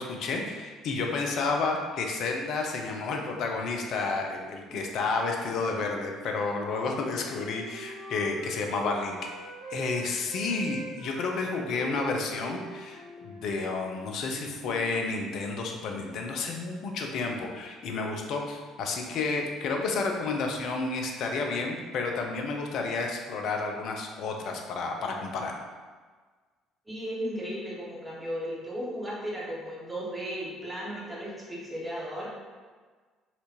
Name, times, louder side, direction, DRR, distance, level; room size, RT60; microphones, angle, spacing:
voice 1, 0.0-25.5, left 3 dB, 55° left, 2 dB, 0.5 m, -31 dB
Wind instrument woodwind instrument, 5.1-10.0 10.3-15.6, right 1 dB, 60° right, 1.0 m, -44 dB
voice 2, 26.9-32.3, equal, 15° right, -6 dB, 1.1 m, -35 dB
4.2 x 2.5 x 2.9 m, 1.4 s
figure-of-eight pair, 50°, 0 cm